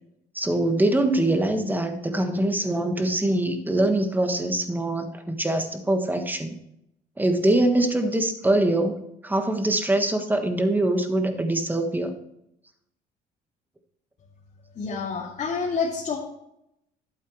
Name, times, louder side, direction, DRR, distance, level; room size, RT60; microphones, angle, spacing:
voice 1, 0.3-6.6 7.2-12.1, right 1 dB, 10° right, 6 dB, 1.4 m, -23 dB
voice 2, 14.7-16.2, left 5 dB, 45° left, -5 dB, 2.5 m, -28 dB
12.0 x 8.3 x 3.1 m, 0.79 s
cardioid pair, 110°, 17 cm